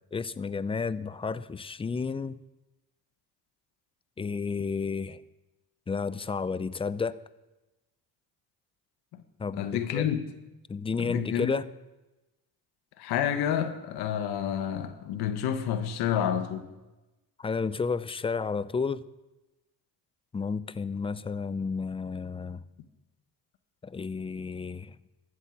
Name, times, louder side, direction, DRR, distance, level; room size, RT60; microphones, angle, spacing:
voice 1, 0.1-2.4 4.2-5.2 5.9-7.2 9.4-10.0 10.7-11.6 17.4-19.0 20.3-22.6 23.8-24.9, left 5 dB, 15° left, 0.4 m, -31 dB
voice 2, 9.5-10.2 11.0-11.5 13.0-16.7, left 9 dB, 90° left, 1.2 m, -29 dB
13.5 x 8.2 x 7.1 m
cardioid pair, 105°, 37 cm